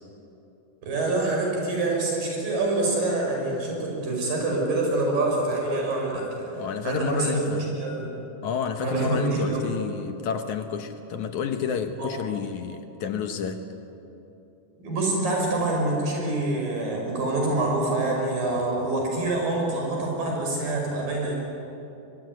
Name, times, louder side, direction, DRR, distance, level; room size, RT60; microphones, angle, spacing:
voice 1, 0.8-7.4 7.7-8.1 8.8-9.6 12.0-12.1 14.8-21.3, right 2 dB, 75° right, 0 dB, 7.3 m, -26 dB
voice 2, 6.5-7.7 8.4-13.7, left 6 dB, 65° left, 7 dB, 2.3 m, -30 dB
23.5 x 22.0 x 9.5 m, 2.9 s
omnidirectional pair, 4.0 m